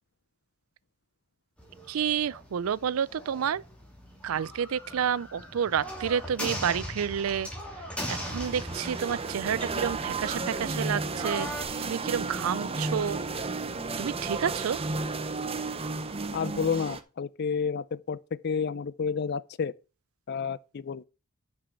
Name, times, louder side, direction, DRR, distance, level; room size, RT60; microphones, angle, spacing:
sound 1, 1.6-11.6, equal, 5° left, 2.6 m, -40 dB
voice 1, 1.9-3.6 4.2-7.5 8.1-11.5 11.9-13.2 14.0-14.8, right 8 dB, 80° right, 0.4 m, -29 dB
sound 2, 8.2-17.0, right 3 dB, 30° right, 0.7 m, -33 dB
voice 2, 16.3-19.7 20.3-21.0, left 6 dB, 50° left, 0.4 m, -30 dB
6.2 x 6.1 x 6.9 m
head